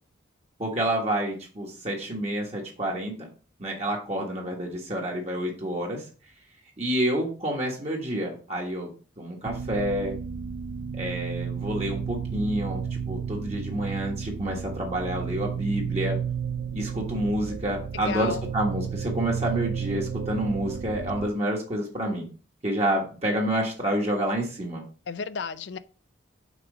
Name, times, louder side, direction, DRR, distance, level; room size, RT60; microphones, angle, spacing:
voice 1, 0.6-3.3 3.6-6.0 6.8-8.9 9.2-10.1 11.0-16.2 16.7-22.3 22.6-24.8, right 1 dB, 35° right, 1.4 m, -28 dB
sound 1, 9.4-21.3, right 7 dB, 75° right, 0.4 m, -32 dB
voice 2, 17.9-18.4 25.1-25.8, left 5 dB, 65° left, 0.5 m, -33 dB
6.1 x 3.9 x 5.0 m
head